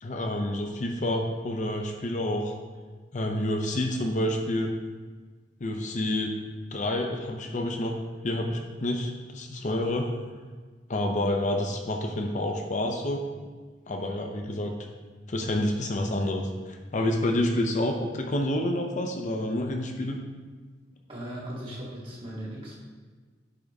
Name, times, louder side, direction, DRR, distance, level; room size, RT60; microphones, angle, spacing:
voice 1, 0.0-2.6 3.1-4.7 5.6-6.3 6.7-7.9 8.2-10.1 10.9-13.2 13.9-14.7 15.3-20.2, left 1 dB, 45° left, 3 dB, 0.6 m, -28 dB
voice 2, 21.1-22.8, right 1 dB, 30° right, -6 dB, 2.1 m, -38 dB
8.5 x 3.5 x 5.3 m, 1.4 s
head